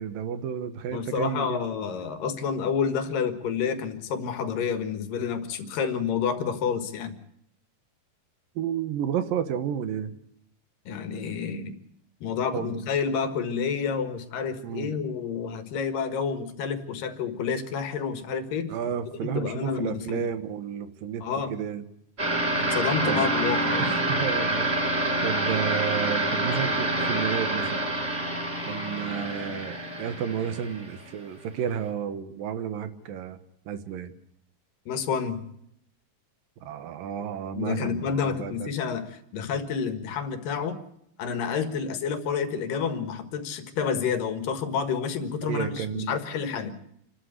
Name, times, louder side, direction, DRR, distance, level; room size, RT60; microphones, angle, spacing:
voice 1, 0.0-1.6 8.6-10.1 12.5-12.8 14.6-14.9 18.7-21.8 23.1-23.3 23.8-25.0 25.2-27.9 28.6-33.4 33.7-34.1 36.6-38.7 45.4-46.2, right 8 dB, 80° right, 11 dB, 2.9 m, -32 dB
voice 2, 0.9-7.2 10.9-11.7 12.2-18.7 19.2-20.2 21.2-21.5 22.6-23.9 34.9-35.4 37.6-40.8 41.2-46.7, left 6 dB, 75° left, 9 dB, 3.2 m, -29 dB
sound 1, 22.2-31.3, right 1 dB, 20° right, 7.5 m, -27 dB
27.5 x 12.5 x 8.2 m, 0.75 s
omnidirectional pair, 4.0 m